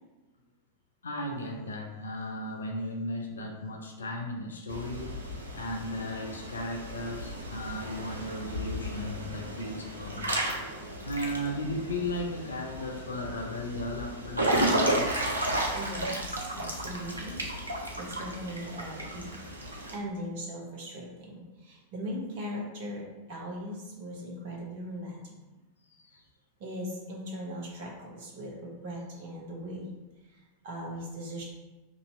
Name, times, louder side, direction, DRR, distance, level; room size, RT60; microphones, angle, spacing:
voice 1, 1.0-5.2 5.5-10.4 11.0-15.2 26.0-26.2, left 1 dB, 70° left, 1 dB, 0.4 m, -36 dB
Water / Splash splatter / Drip, 4.7-20.0, right 1 dB, 80° right, 0.6 m, -33 dB
voice 2, 15.7-19.4 19.9-25.3 26.6-29.9 30.3-31.4, equal, 50° right, -3 dB, 1.1 m, -39 dB
3.0 x 2.7 x 4.2 m, 1.1 s
figure-of-eight pair, 90°, 0 cm